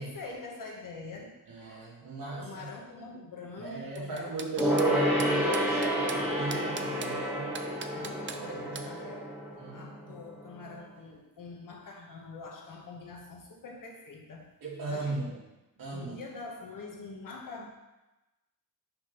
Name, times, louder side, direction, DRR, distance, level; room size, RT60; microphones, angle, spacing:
voice 1, 0.0-1.4 2.4-4.4 7.9-9.4 9.7-14.5 14.9-15.3 15.9-17.7, left 3 dB, 60° left, 0 dB, 1.5 m, -45 dB
voice 2, 1.5-2.7 3.6-7.5 8.4-8.9 9.6-10.2 14.6-15.4 15.8-16.2, right 3 dB, 70° right, -4 dB, 2.3 m, -38 dB
sound 1, 3.9-4.9 5.2-6.2 6.5-7.1 7.5-8.4 8.7-8.9, right 6 dB, 35° right, 0.5 m, -40 dB
Gong, 4.6-10.5 10.7-10.8, equal, 5° right, 1.6 m, -29 dB
5.8 x 5.2 x 5.5 m, 1.0 s
wide cardioid pair, 140°, 36 cm